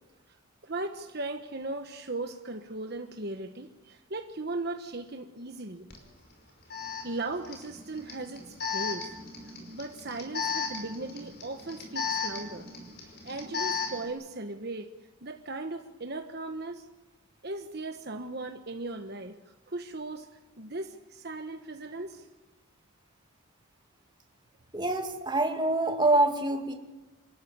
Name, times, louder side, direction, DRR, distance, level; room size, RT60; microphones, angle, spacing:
voice 1, 0.6-5.9 7.0-9.1 9.7-12.7 13.0-14.9 15.2-16.9 17.4-19.4 19.7-20.3 20.6-22.3, right 2 dB, 50° right, 6 dB, 1.3 m, -37 dB
Alarm, 5.9-6.0 6.7-14.1, left 5 dB, 45° left, 5.2 m, -35 dB
voice 2, 24.7-26.7, right 2 dB, 20° right, 4 dB, 2.3 m, -25 dB
26.5 x 14.0 x 9.6 m, 1.1 s
head